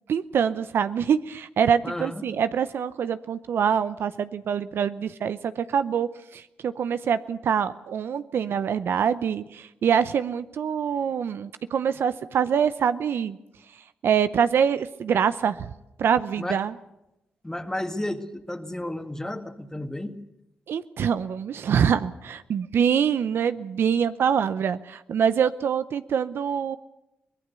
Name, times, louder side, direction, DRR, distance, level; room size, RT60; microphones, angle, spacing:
voice 1, 0.1-13.4 14.0-15.7 16.0-16.7 20.7-26.8, right 7 dB, 70° right, 12 dB, 0.7 m, -25 dB
voice 2, 1.8-2.2 16.4-16.6 17.4-20.2, left 1 dB, 15° left, 6 dB, 2.1 m, -32 dB
24.0 x 19.0 x 6.9 m, 0.90 s
supercardioid pair, 50°, 4 cm